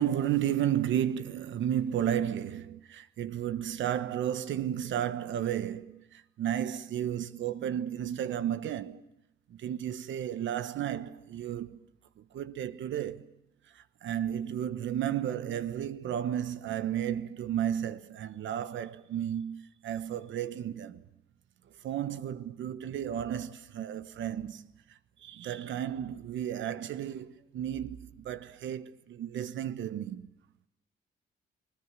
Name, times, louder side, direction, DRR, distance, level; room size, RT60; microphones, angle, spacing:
voice 1, 0.0-9.0 9.5-11.8 12.2-13.3 13.7-21.0 21.8-24.7 25.2-30.3, right 10 dB, 70° right, 1.2 m, -33 dB
21.0 x 20.0 x 9.7 m
cardioid pair, 90°, 20 cm